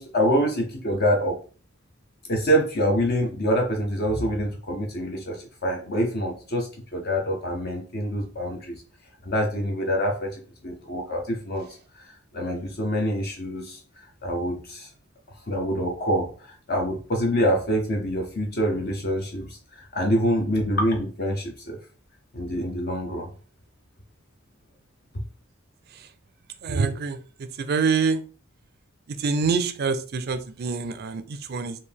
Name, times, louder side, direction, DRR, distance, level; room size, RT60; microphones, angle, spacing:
voice 1, 0.0-1.4 2.3-8.8 9.2-11.7 11.9-14.9 15.5-21.8 22.3-23.3, equal, 50° left, 2 dB, 0.8 m, -26 dB
voice 2, 26.6-27.2 27.6-28.2 29.2-31.8, right 5 dB, 50° right, 11 dB, 0.4 m, -25 dB
4.5 x 2.7 x 3.4 m, 0.39 s
head